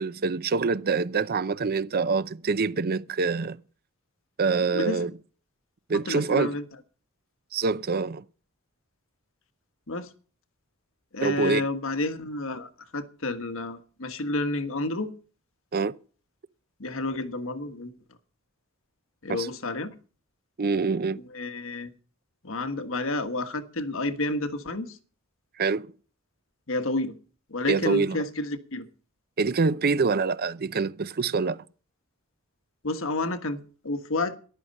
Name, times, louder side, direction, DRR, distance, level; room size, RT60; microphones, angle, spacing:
voice 1, 0.0-3.6 4.4-5.1 5.9-6.5 7.5-8.2 11.2-11.7 15.7-15.9 19.3-19.5 20.6-21.2 25.6-25.9 27.7-28.2 29.4-31.6, right 4 dB, 45° right, 0.6 m, -25 dB
voice 2, 6.1-6.6 9.9-10.1 11.1-15.1 16.8-17.9 19.2-19.9 21.3-21.9 22.4-25.0 26.7-27.1 27.5-28.9 32.8-34.4, left 2 dB, 65° left, 1.4 m, -30 dB
13.5 x 11.5 x 5.3 m
head